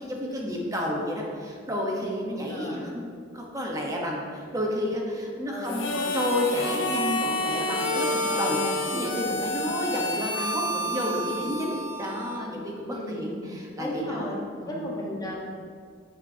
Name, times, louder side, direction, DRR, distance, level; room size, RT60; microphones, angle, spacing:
voice 1, 0.0-2.9 3.3-14.3 14.6-14.8, left 1 dB, 20° right, -1 dB, 1.1 m, -31 dB
voice 2, 2.5-2.9 5.5-6.0 8.2-9.0 12.9-13.3 13.8-14.4 14.6-15.3, left 1 dB, 20° left, -3 dB, 1.3 m, -35 dB
Harmonica, 5.7-12.6, left 1 dB, 80° left, 0.9 m, -29 dB
8.8 x 6.8 x 2.8 m, 2.1 s
head